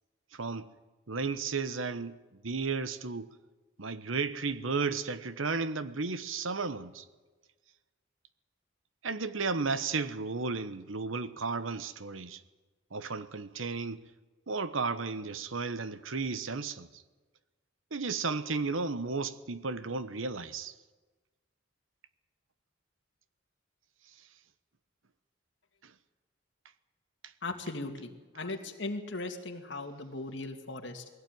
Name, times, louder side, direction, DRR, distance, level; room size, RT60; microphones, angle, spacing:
voice 1, 0.3-0.7 1.1-2.2 2.4-3.3 3.8-7.0 9.0-12.4 12.9-14.1 14.5-16.9 17.9-20.7, right 4 dB, 85° right, 1.1 m, -33 dB
voice 2, 27.4-31.1, left 2 dB, 65° left, 2.4 m, -38 dB
20.5 x 16.5 x 9.3 m
head